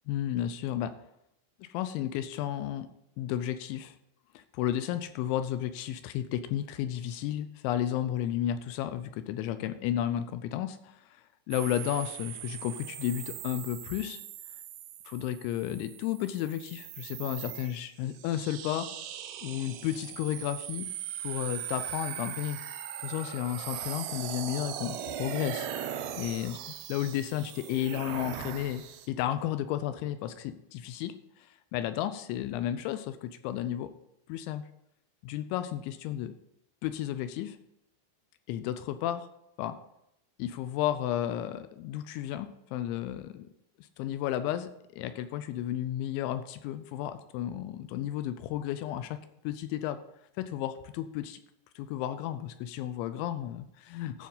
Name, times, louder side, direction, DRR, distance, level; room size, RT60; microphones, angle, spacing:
voice 1, 0.1-0.9 1.6-2.9 3.2-4.0 4.3-14.2 15.1-18.9 19.4-20.9 21.2-22.6 23.0-25.7 26.2-33.9 34.3-34.7 35.2-36.4 36.8-37.6 38.5-39.3 39.6-39.8 40.4-43.5 43.8-49.2 49.4-50.0 50.4-51.4 51.8-54.3, left 11 dB, 85° left, 11 dB, 2.8 m, -33 dB
sound 1, 11.5-29.1, right 10 dB, 85° right, 2.2 m, -40 dB
13.0 x 4.6 x 5.4 m, 0.81 s
omnidirectional pair, 5.6 m